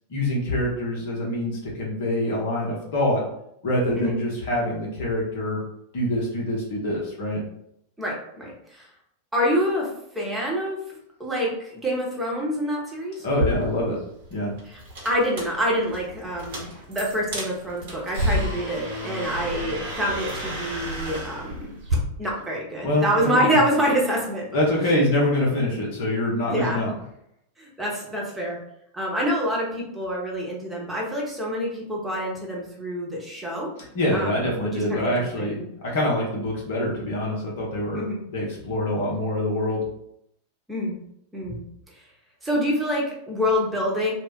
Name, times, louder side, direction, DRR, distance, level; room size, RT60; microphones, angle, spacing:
voice 1, 0.1-3.2 3.6-5.6 5.9-7.4 13.2-14.0 14.3-14.5 22.8-23.6 24.5-26.9 33.9-38.0 38.3-39.8, left 1 dB, 50° left, -3 dB, 0.8 m, -25 dB
voice 2, 8.0-8.9 9.3-9.9 10.1-10.8 11.2-13.3 14.7-14.8 15.0-21.7 22.2-24.6 26.5-26.8 27.6-28.6 28.9-33.7 34.1-34.5 34.7-35.7 37.9-38.2 40.7-41.0 41.3-41.6 42.4-44.1, equal, 10° right, -3 dB, 0.9 m, -26 dB
sound 1, 13.3-22.0, equal, 55° right, 1.0 m, -31 dB
2.5 x 2.0 x 3.5 m, 0.75 s
figure-of-eight pair, 90°, 0 cm